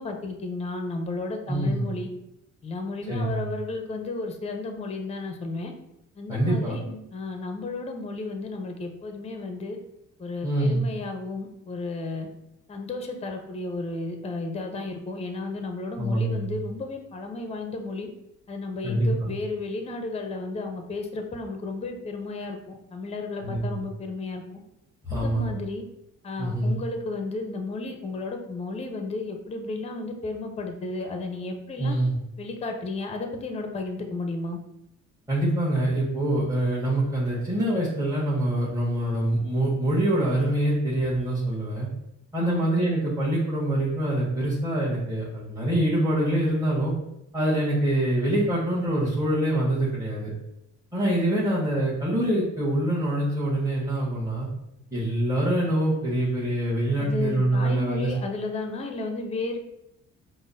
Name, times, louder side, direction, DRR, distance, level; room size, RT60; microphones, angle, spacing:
voice 1, 0.0-2.1 2.6-5.7 6.2-9.8 10.2-12.3 12.7-18.1 18.5-22.6 22.9-24.4 25.1-25.8 26.2-32.0 32.4-34.6 42.4-42.7 57.0-59.6, left 3 dB, 20° left, 5 dB, 0.5 m, -33 dB
voice 2, 1.5-1.8 3.1-3.5 6.3-6.8 10.4-10.8 16.0-16.5 18.8-19.3 23.4-23.8 25.1-25.6 26.4-26.8 31.8-32.1 35.3-41.9 42.3-46.9 47.3-50.3 50.9-54.5 54.9-58.1, right 1 dB, 10° right, -9 dB, 1.1 m, -25 dB
5.2 x 2.0 x 2.6 m, 0.84 s
cardioid pair, 90°, 30 cm